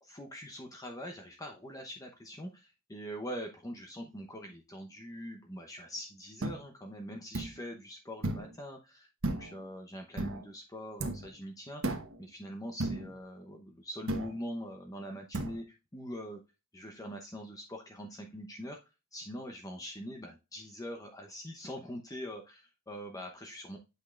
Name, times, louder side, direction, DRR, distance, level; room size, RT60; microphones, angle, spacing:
voice 1, 0.0-16.4 16.7-18.8 19.1-23.8, equal, 15° left, 3 dB, 0.8 m, -43 dB
sound 1, 6.4-6.6 7.3-7.6 8.2-8.5 9.2-9.6 10.2-10.4 11.0-11.3 11.8-12.2 12.8-13.1 14.1-14.4 15.3-15.6, right 2 dB, 75° right, 1.2 m, -34 dB
8.3 x 5.3 x 2.4 m, 0.27 s
head